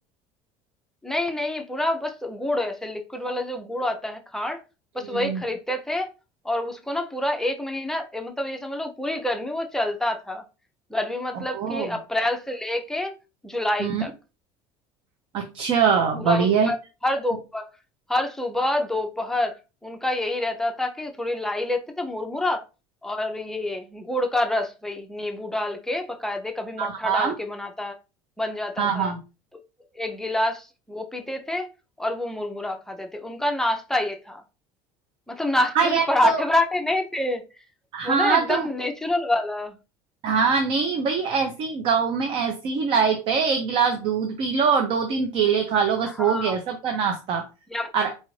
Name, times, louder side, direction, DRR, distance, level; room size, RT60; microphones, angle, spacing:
voice 1, 1.0-4.6 4.9-6.1 6.4-10.4 10.9-13.2 13.4-14.1 16.2-16.8 17.0-17.7 18.1-19.5 19.8-22.6 23.0-28.0 28.4-29.1 30.0-31.7 32.0-34.4 35.3-37.4 38.0-39.8 46.2-46.5 47.7-47.9, left 1 dB, 5° left, 0.5 m, -27 dB
voice 2, 5.0-5.4 11.5-12.0 13.8-14.0 15.3-16.7 26.8-27.4 28.8-29.2 35.7-36.4 37.9-38.7 40.2-47.4 47.9-48.1, right 6 dB, 50° right, 0.6 m, -23 dB
4.1 x 2.5 x 3.1 m
cardioid pair, 140°, 11 cm